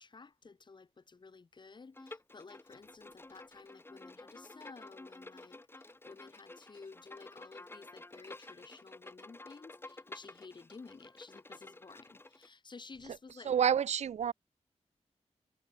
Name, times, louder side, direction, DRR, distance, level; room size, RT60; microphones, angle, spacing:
voice 1, 0.0-13.6, left 4 dB, 40° left, 2.6 m, -54 dB
Bowed string instrument, 1.9-12.5, left 2 dB, 20° left, 2.2 m, -52 dB
voice 2, 13.5-14.3, right 8 dB, 70° right, 0.4 m, -28 dB
wide cardioid pair, 140°, 12 cm